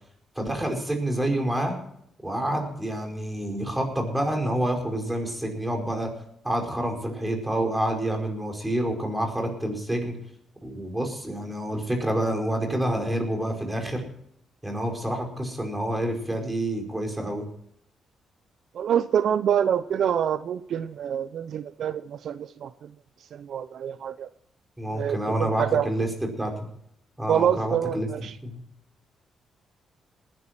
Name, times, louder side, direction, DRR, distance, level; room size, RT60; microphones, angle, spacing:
voice 1, 0.3-1.8 2.2-6.1 6.4-10.2 10.6-14.0 14.6-17.5 24.8-26.1 26.4-26.6 27.2-28.1 28.4-28.6, right 1 dB, 10° right, 2 dB, 4.9 m, -28 dB
voice 2, 18.7-22.9 23.3-24.3 24.9-25.9 27.3-28.3, right 9 dB, 65° right, 13 dB, 0.6 m, -26 dB
20.0 x 10.5 x 4.4 m, 0.71 s
cardioid pair, 95°, 0 cm